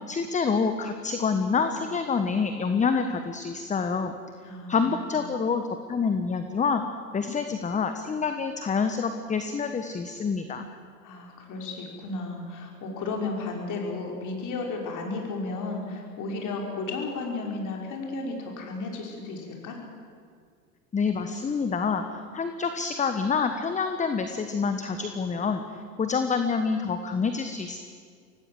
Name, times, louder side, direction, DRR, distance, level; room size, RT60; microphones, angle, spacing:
voice 1, 0.1-4.1 4.7-5.6 5.9-6.8 7.1-10.7 20.9-25.6 26.0-27.8, left 5 dB, 15° left, 8 dB, 1.3 m, -27 dB
voice 2, 4.4-5.0 11.0-19.8, left 3 dB, 40° left, 0 dB, 6.0 m, -33 dB
25.5 x 17.5 x 7.9 m, 2.1 s
hypercardioid pair, 95°, 48 cm